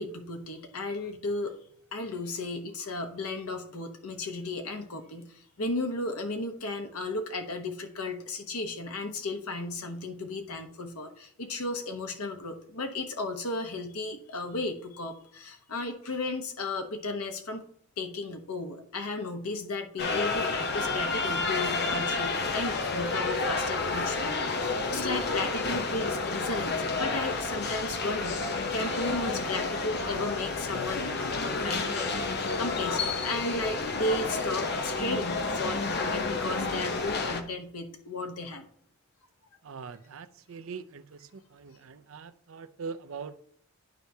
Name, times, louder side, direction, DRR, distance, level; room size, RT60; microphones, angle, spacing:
voice 1, 0.0-1.5 1.9-17.6 18.0-38.7, left 2 dB, 85° left, 1.0 m, -35 dB
sound 1, 20.0-37.4, left 3 dB, 50° left, 0.8 m, -30 dB
voice 2, 39.6-43.4, right 5 dB, 70° right, 0.5 m, -42 dB
11.5 x 4.5 x 2.8 m
head